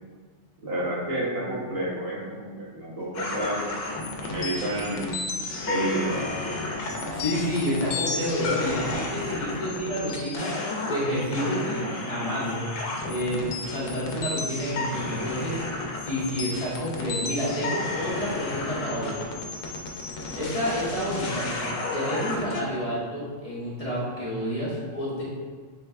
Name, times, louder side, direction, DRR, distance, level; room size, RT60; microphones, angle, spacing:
voice 1, 0.6-3.8 4.2-5.2 5.7-6.7, right 1 dB, 55° right, -6 dB, 0.9 m, -30 dB
sound 1, 3.1-22.6, left 3 dB, 75° left, 1.0 m, -32 dB
voice 2, 7.1-12.5 13.0-15.6 15.9-19.2 20.3-25.2, equal, 30° left, -9 dB, 0.9 m, -29 dB
4.6 x 3.2 x 2.3 m, 1.5 s
omnidirectional pair, 1.4 m